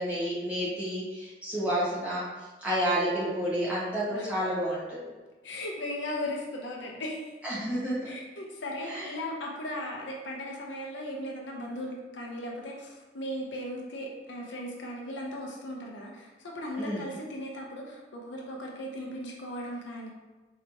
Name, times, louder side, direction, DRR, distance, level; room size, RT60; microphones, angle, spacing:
voice 1, 0.0-2.3 2.6-5.1 7.4-8.1 8.9-9.1 16.8-17.0, equal, 5° right, -10 dB, 1.2 m, -30 dB
voice 2, 5.4-7.3 8.0-20.1, left 1 dB, 70° left, -1 dB, 0.6 m, -37 dB
4.4 x 2.8 x 2.7 m, 1.2 s
head